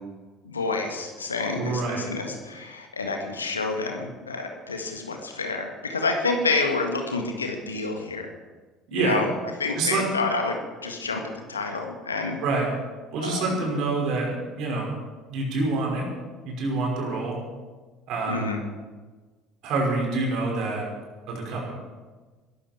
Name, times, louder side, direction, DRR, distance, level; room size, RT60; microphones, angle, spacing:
voice 1, 0.4-8.3 8.9-9.3 9.6-11.2 11.5-12.4 13.2-13.5 18.3-18.6, left 3 dB, 80° left, 3 dB, 1.7 m, -28 dB
voice 2, 1.5-2.0 8.9-9.2 9.8-10.0 12.4-12.7 13.1-14.9 15.3-16.0 16.4-17.4 18.1-18.5 19.6-20.8 21.3-21.7, right 3 dB, 55° right, -1 dB, 5.9 m, -26 dB
21.5 x 13.5 x 4.7 m, 1.3 s
figure-of-eight pair, 60°, 0 cm